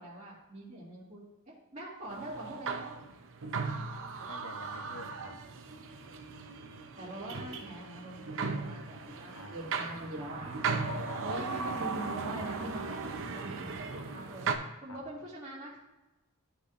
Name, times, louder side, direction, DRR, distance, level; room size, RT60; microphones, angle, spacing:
voice 1, 0.0-2.9 7.0-10.6 10.9-14.5 14.8-15.8, right 1 dB, 35° right, -11 dB, 2.1 m, -43 dB
sound 1, 2.1-14.6, right 4 dB, 60° right, 0.7 m, -37 dB
voice 2, 4.3-5.4 9.3-9.6 10.8-11.2 14.9-15.0, left 2 dB, 80° left, 5 dB, 0.9 m, -48 dB
13.0 x 4.9 x 2.6 m, 1.1 s
head